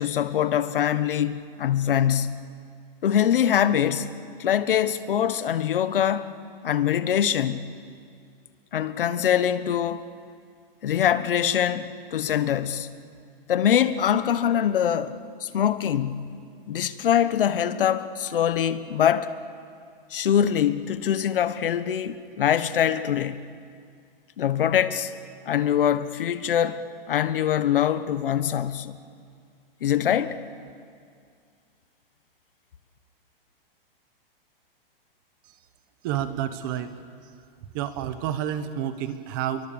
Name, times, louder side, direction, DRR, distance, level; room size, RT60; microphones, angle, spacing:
voice 1, 0.0-2.4 3.0-4.1 4.4-6.3 6.6-7.7 8.7-10.0 10.8-12.9 13.5-16.3 16.7-19.4 20.1-23.4 24.4-25.1 25.4-29.0 29.8-30.4, left 9 dB, 65° left, 1.3 m, -23 dB
voice 2, 36.0-36.9 37.7-39.6, right 10 dB, 20° right, 1.0 m, -29 dB
30.0 x 23.0 x 7.2 m
hypercardioid pair, 180°, 29 cm